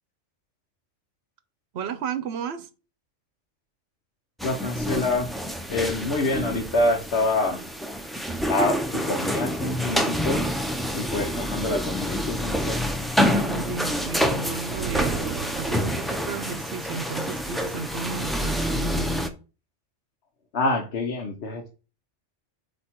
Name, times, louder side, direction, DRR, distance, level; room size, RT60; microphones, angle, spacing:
voice 1, 1.7-2.7 13.2-15.2 15.5-19.2, right 6 dB, 65° right, 0.9 m, -33 dB
voice 2, 4.4-5.3 5.7-7.6 8.5-10.4 10.9-12.8 20.5-21.7, left 2 dB, 65° left, 1.1 m, -26 dB
sound 1, 4.4-19.3, equal, ahead, 0.4 m, -27 dB
sound 2, 14.7-16.3, right 9 dB, 85° right, 0.9 m, -34 dB
8.2 x 2.9 x 4.4 m
omnidirectional pair, 1.2 m